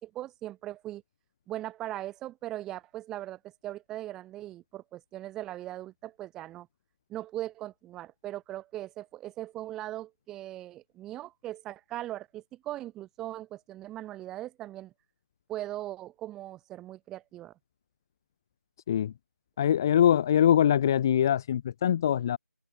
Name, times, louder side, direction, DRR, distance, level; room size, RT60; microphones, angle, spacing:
voice 1, 0.0-1.0 1.5-6.7 7.1-14.9 15.5-17.5, right 14 dB, 5° right, 2.7 m, -39 dB
voice 2, 19.6-22.4, left 10 dB, 15° left, 1.0 m, -23 dB
figure-of-eight pair, 170°, 9 cm